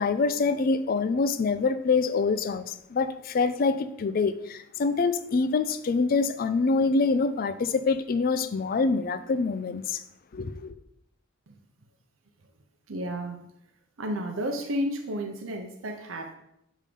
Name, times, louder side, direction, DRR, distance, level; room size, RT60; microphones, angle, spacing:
voice 1, 0.0-10.0 10.3-10.7, left 4 dB, 45° left, 0.4 m, -25 dB
voice 2, 12.9-13.4 14.0-16.3, equal, 90° right, 0.7 m, -32 dB
6.7 x 3.6 x 5.0 m
head